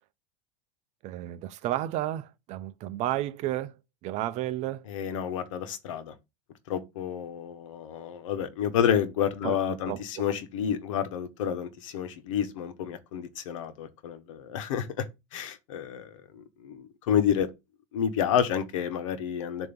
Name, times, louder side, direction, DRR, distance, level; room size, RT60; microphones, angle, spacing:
voice 1, 1.0-4.9 9.4-9.6 9.9-10.2, right 14 dB, 45° right, 0.7 m, -32 dB
voice 2, 4.9-6.1 6.7-15.1 15.3-17.5 17.9-19.7, left 8 dB, 85° left, 1.2 m, -29 dB
7.2 x 3.0 x 5.3 m
supercardioid pair, 140°, 16 cm